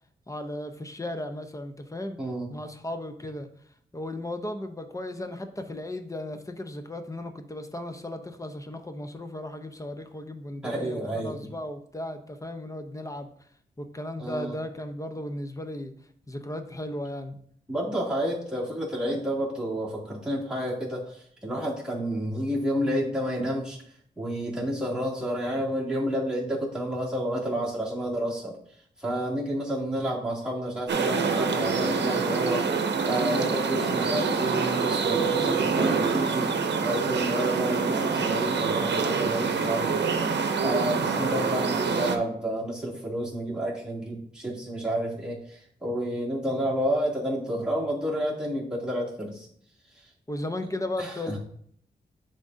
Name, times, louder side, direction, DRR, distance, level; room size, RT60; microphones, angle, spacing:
voice 1, 0.3-2.2 2.5-3.5 3.9-13.3 13.8-15.9 16.3-17.4 50.3-51.4, left 1 dB, 20° left, 7 dB, 0.7 m, -35 dB
voice 2, 10.6-11.4 14.2-14.5 17.7-23.8 24.2-28.5 29.0-32.6 33.0-36.5 36.8-40.2 40.6-49.5 51.0-51.4, right 1 dB, 5° right, -6 dB, 2.6 m, -30 dB
sound 1, 30.9-42.2, right 5 dB, 90° right, 0.7 m, -26 dB
10.5 x 3.7 x 2.7 m, 0.64 s
wide cardioid pair, 85°, 18 cm